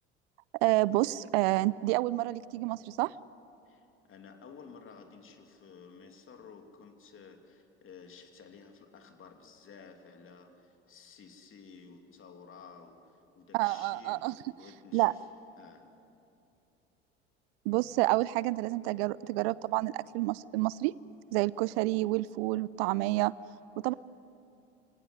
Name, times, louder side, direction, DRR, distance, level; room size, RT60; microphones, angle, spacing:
voice 1, 0.6-3.1 13.5-14.4 14.9-15.1 17.7-20.9 21.3-23.3 23.8-23.9, right 19 dB, 60° right, 21 dB, 0.5 m, -29 dB
voice 2, 3.6-15.2 15.6-15.9, left 5 dB, 40° left, 5 dB, 2.9 m, -53 dB
26.0 x 18.0 x 9.7 m, 2.7 s
figure-of-eight pair, 65°, 34 cm